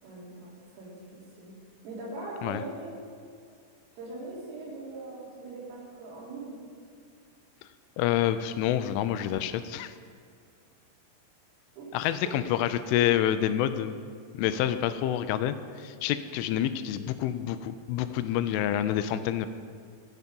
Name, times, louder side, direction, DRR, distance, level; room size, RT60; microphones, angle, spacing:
voice 1, 0.0-1.5 1.8-2.9 4.0-6.5 11.8-11.9 12.2-12.4, right 2 dB, 85° right, -6 dB, 6.0 m, -41 dB
voice 2, 8.0-9.9 11.9-14.0 14.3-19.5, left 11 dB, 85° left, 11 dB, 3.0 m, -28 dB
14.0 x 9.5 x 5.3 m, 2.2 s
omnidirectional pair, 5.7 m